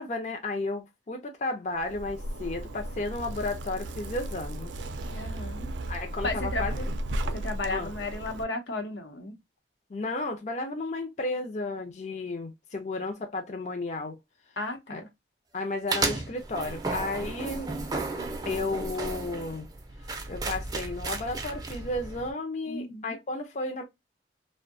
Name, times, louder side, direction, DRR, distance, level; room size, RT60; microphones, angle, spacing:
voice 1, 0.0-4.7 5.9-6.9 7.7-7.9 9.9-14.2 14.9-15.0 15.5-17.7 18.4-19.7 20.3-23.8, left 2 dB, 40° left, 0.4 m, -33 dB
Zipper (clothing), 1.8-8.4, right 1 dB, 90° right, 0.4 m, -35 dB
voice 2, 5.1-5.7 6.2-6.6 7.3-9.4 14.6-15.1 22.7-23.2, left 2 dB, 90° left, 0.8 m, -34 dB
sound 1, 15.9-22.3, right 3 dB, 20° right, 0.4 m, -34 dB
2.6 x 2.1 x 2.5 m
head